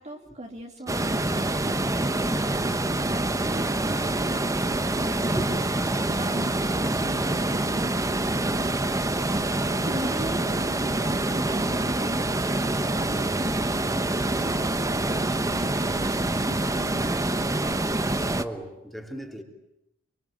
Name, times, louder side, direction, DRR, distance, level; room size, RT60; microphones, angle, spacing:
voice 1, 0.0-2.7 3.0-5.6 6.1-8.0 9.2-17.0, right 1 dB, 30° right, 2.5 m, -39 dB
sound 1, 0.9-18.4, right 2 dB, 15° right, 1.0 m, -26 dB
voice 2, 18.4-19.4, equal, ahead, 3.3 m, -35 dB
27.0 x 25.0 x 8.7 m
head